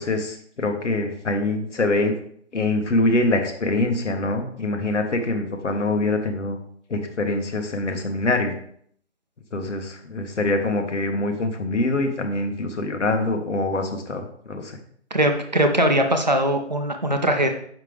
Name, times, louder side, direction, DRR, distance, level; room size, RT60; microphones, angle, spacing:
voice 1, 0.0-2.2 2.5-6.6 6.9-8.5 9.5-14.7, left 2 dB, 80° left, 5 dB, 1.5 m, -24 dB
voice 2, 15.1-17.5, right 1 dB, 40° right, 5 dB, 0.6 m, -21 dB
6.6 x 5.9 x 3.4 m, 0.63 s
hypercardioid pair, 180°, 35 cm